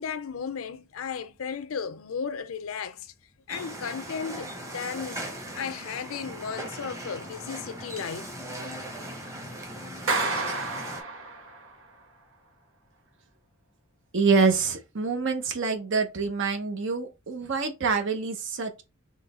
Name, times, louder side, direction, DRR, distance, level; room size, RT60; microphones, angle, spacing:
voice 1, 0.0-3.1 3.5-5.2 5.5-8.3, left 6 dB, 75° left, 0.5 m, -35 dB
sound 1, 3.5-11.0, right 1 dB, 15° right, 1.1 m, -39 dB
Clapping, 10.1-11.7, right 3 dB, 85° right, 1.3 m, -30 dB
voice 2, 14.1-18.8, right 4 dB, 65° right, 0.8 m, -26 dB
3.9 x 3.2 x 4.1 m
head